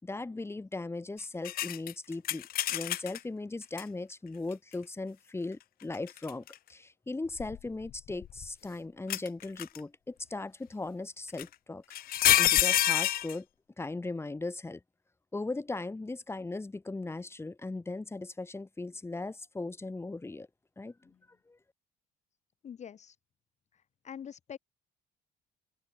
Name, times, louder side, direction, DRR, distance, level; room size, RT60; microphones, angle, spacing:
voice 1, 0.0-6.4 6.7-11.8 12.4-13.5 13.8-14.8 15.3-20.5 20.8-20.9 21.5-21.6, left 2 dB, 15° left, 3.9 m, -38 dB
sound 1, 1.4-3.2 3.8-3.9 5.9-6.5 7.4-8.5 9.1-9.8 11.4-11.5 11.9-13.4, left 13 dB, 60° left, 1.0 m, -27 dB
voice 2, 22.6-23.2 23.7-24.6, left 8 dB, 45° left, 2.0 m, -45 dB
open air
cardioid pair, 110°, 17 cm